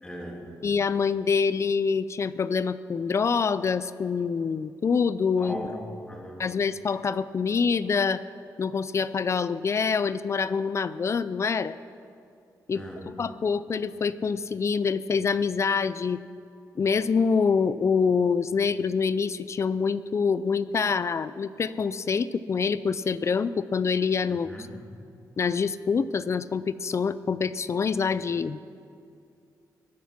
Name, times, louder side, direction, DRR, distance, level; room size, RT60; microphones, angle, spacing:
voice 1, 0.0-0.6 5.4-6.5 12.7-13.1 24.3-24.8, left 1 dB, 15° left, 0 dB, 2.7 m, -39 dB
voice 2, 0.6-5.7 6.4-8.2 8.6-11.8 12.7-16.2 16.8-24.5 25.4-28.8, left 5 dB, 40° left, 15 dB, 0.4 m, -26 dB
20.0 x 10.0 x 5.9 m, 2.5 s
cardioid pair, 110°, 7 cm